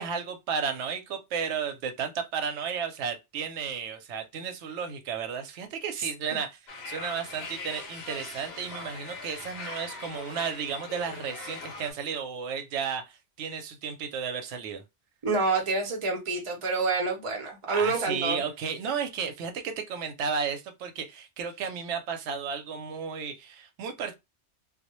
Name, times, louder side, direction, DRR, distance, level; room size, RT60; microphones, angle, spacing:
voice 1, 0.0-6.6 6.9-14.8 17.7-24.1, right 6 dB, 90° right, 0.9 m, -33 dB
sound 1, 6.7-11.9, left 3 dB, 70° left, 0.9 m, -41 dB
voice 2, 15.2-18.4, right 3 dB, 35° right, 0.6 m, -27 dB
2.2 x 2.1 x 2.9 m
omnidirectional pair, 1.2 m